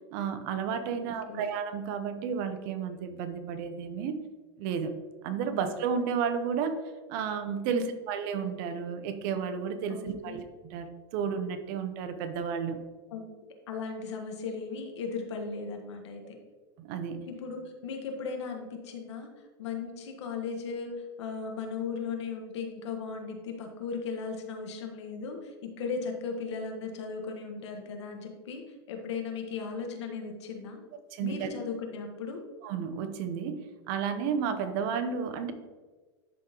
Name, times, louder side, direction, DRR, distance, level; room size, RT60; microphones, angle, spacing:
voice 1, 0.1-4.2 4.6-4.9 5.2-6.8 7.1-12.8 16.8-17.3 31.1-31.5 32.6-35.5, right 6 dB, 50° right, 9 dB, 0.7 m, -32 dB
voice 2, 1.0-1.4 7.7-7.9 9.9-10.4 13.1-13.2 13.7-16.4 17.3-19.3 19.6-20.9 21.2-28.6 28.9-30.8 31.2-32.4, left 5 dB, 80° left, 3 dB, 1.4 m, -37 dB
11.5 x 3.8 x 2.9 m, 1.3 s
supercardioid pair, 145°, 14 cm